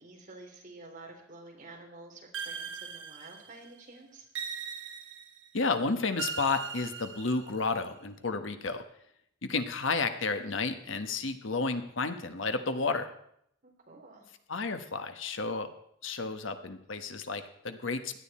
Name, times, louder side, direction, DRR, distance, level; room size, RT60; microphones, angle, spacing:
voice 1, 0.0-4.2 13.6-14.3, right 2 dB, 40° right, 0 dB, 3.6 m, -50 dB
sound 1, 2.3-3.7 4.3-5.5 6.2-7.7, right 6 dB, 65° right, 1.3 m, -39 dB
voice 2, 5.5-8.8 9.5-13.1 14.5-15.7 16.0-18.2, left 4 dB, 70° left, 8 dB, 1.2 m, -31 dB
17.5 x 11.5 x 4.3 m, 0.71 s
head